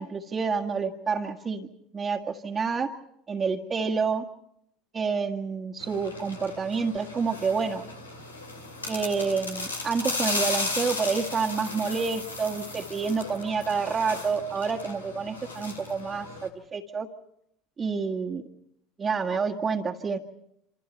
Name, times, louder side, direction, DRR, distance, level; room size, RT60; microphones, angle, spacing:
voice 1, 0.0-1.7 1.9-2.9 3.3-4.3 4.9-7.8 8.9-17.1 17.8-18.4 19.0-20.2, right 5 dB, 25° right, -1 dB, 1.8 m, -28 dB
sound 1, 5.8-16.5, left 3 dB, 85° left, 2.6 m, -35 dB
28.0 x 26.5 x 4.5 m, 0.76 s
figure-of-eight pair, 70°, 0 cm